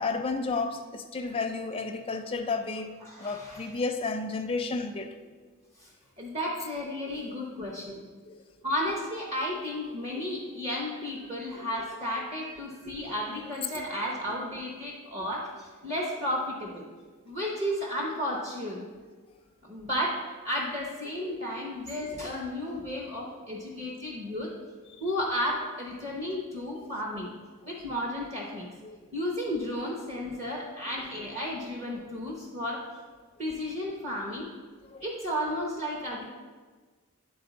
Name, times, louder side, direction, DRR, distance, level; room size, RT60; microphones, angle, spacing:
voice 1, 0.0-2.9 3.2-5.2 8.3-8.4 21.2-21.4 24.9-25.0 28.8-29.0 34.9-35.0, left 4 dB, 25° left, 5 dB, 0.4 m, -32 dB
voice 2, 3.0-3.7 5.8-5.9 6.2-8.0 8.6-16.9 17.2-18.9 19.6-24.5 25.0-27.3 27.7-28.7 29.1-32.8 33.4-34.5 35.0-36.3, equal, 30° right, -2 dB, 0.8 m, -33 dB
10.0 x 3.9 x 4.0 m, 1.4 s
head